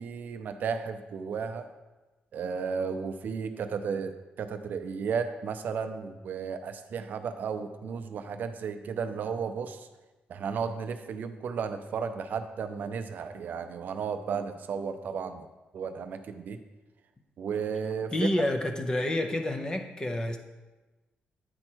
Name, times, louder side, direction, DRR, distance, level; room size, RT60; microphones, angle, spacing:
voice 1, 0.0-1.7 2.3-9.9 10.3-15.5 15.7-16.6 17.4-18.3, right 6 dB, 55° right, 8 dB, 0.5 m, -34 dB
voice 2, 18.1-20.4, left 1 dB, 20° left, 4 dB, 0.6 m, -28 dB
9.6 x 4.4 x 4.5 m, 1.1 s
wide cardioid pair, 165°, 4 cm